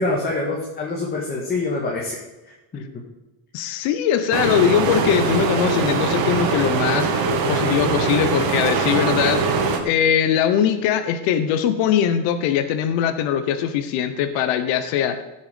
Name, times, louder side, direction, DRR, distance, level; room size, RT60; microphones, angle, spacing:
voice 1, 0.0-2.8, left 2 dB, 20° left, -2 dB, 1.8 m, -26 dB
voice 2, 3.5-9.6 9.8-15.2, left 9 dB, 70° left, 9 dB, 1.2 m, -21 dB
sound 1, 4.3-9.8, right 4 dB, 50° right, 1.7 m, -22 dB
16.0 x 7.2 x 5.2 m, 1.1 s
cardioid pair, 175°, 47 cm